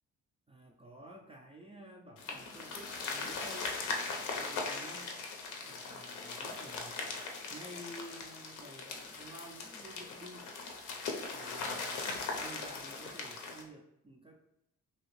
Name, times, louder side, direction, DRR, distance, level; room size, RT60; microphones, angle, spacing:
voice 1, 0.5-3.8 4.3-5.2 5.6-7.1 7.5-10.5 11.3-14.4, right 1 dB, 20° right, 1 dB, 0.3 m, -52 dB
sound 1, 2.2-13.6, left 4 dB, 80° left, 0.6 m, -40 dB
2.8 x 2.7 x 3.0 m, 0.79 s
cardioid pair, 90°, 30 cm